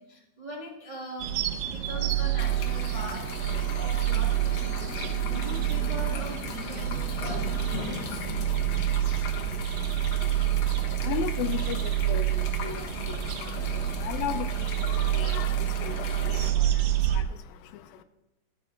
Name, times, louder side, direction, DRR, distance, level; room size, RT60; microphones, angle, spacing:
voice 1, 0.0-1.4 1.6-3.3 3.7-4.9 5.2-8.2, right 1 dB, 25° right, -3 dB, 0.9 m, -41 dB
sound 1, 1.2-17.2, right 13 dB, 75° right, 2.3 m, -28 dB
Wind instrument woodwind instrument, 1.8-6.1, left 5 dB, 45° left, 0.8 m, -47 dB
sound 2, 2.4-16.5, left 6 dB, 65° left, 1.8 m, -38 dB
voice 2, 9.7-18.0, left 10 dB, 80° left, 10 dB, 2.4 m, -37 dB
13.5 x 8.8 x 3.9 m, 0.99 s
omnidirectional pair, 4.3 m